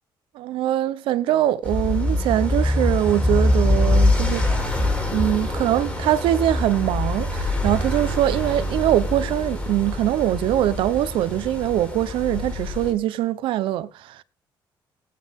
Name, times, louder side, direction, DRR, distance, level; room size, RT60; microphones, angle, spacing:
voice 1, 0.3-4.4 5.1-14.2, right 13 dB, 85° right, 1.0 m, -22 dB
sound 1, 1.6-12.9, left 1 dB, 15° left, 6.3 m, -24 dB
18.5 x 9.4 x 3.7 m
cardioid pair, 150°, 9 cm